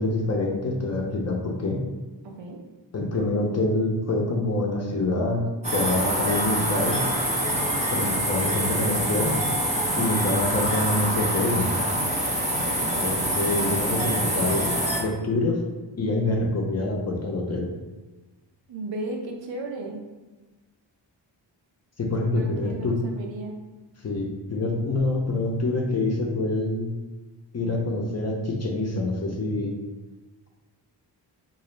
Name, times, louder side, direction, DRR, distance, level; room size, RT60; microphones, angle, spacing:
voice 1, 0.0-1.8 2.9-5.5 5.7-7.0 7.9-9.3 10.0-11.7 12.7-14.7 15.0-15.6 16.0-17.7 22.0-23.0 24.0-26.9 27.5-29.7, left 2 dB, 35° left, 0 dB, 0.4 m, -26 dB
voice 2, 2.2-2.6 13.8-14.6 18.7-20.0 22.1-23.5, right 2 dB, 80° right, 2 dB, 0.7 m, -36 dB
sound 1, 5.6-15.0, right 1 dB, 15° right, 0.5 m, -25 dB
3.8 x 2.4 x 3.1 m, 1.2 s
wide cardioid pair, 165°, 44 cm